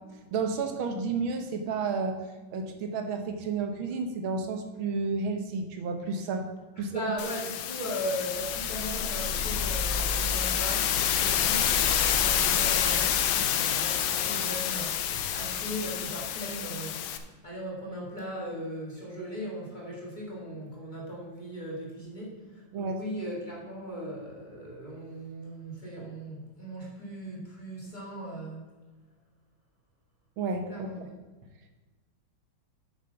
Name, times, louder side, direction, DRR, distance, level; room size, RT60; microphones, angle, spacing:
voice 1, 0.3-2.2 2.5-6.5 6.8-7.1 22.7-23.0 30.4-30.7, right 4 dB, 75° right, 6 dB, 1.8 m, -31 dB
voice 2, 6.8-14.9 15.3-17.0 17.4-28.7 30.7-31.1, equal, 20° left, -4 dB, 2.2 m, -38 dB
sound 1, 7.2-17.2, left 10 dB, 80° left, 1.5 m, -28 dB
sound 2, 8.3-16.6, left 2 dB, 55° left, 1.8 m, -38 dB
8.1 x 6.7 x 5.7 m, 1.2 s
omnidirectional pair, 2.3 m